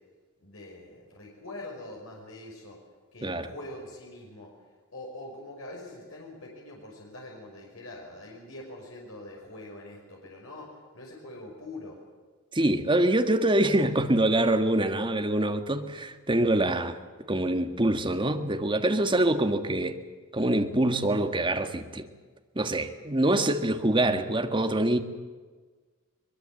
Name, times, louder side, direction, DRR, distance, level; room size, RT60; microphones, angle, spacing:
voice 1, 0.4-2.8 3.1-4.5 4.9-12.0, left 1 dB, 70° left, -1 dB, 5.6 m, -44 dB
voice 2, 12.5-17.0 17.3-20.0 20.3-22.1 22.5-25.0, right 1 dB, 25° right, 6 dB, 1.6 m, -25 dB
22.5 x 22.0 x 7.8 m, 1.4 s
head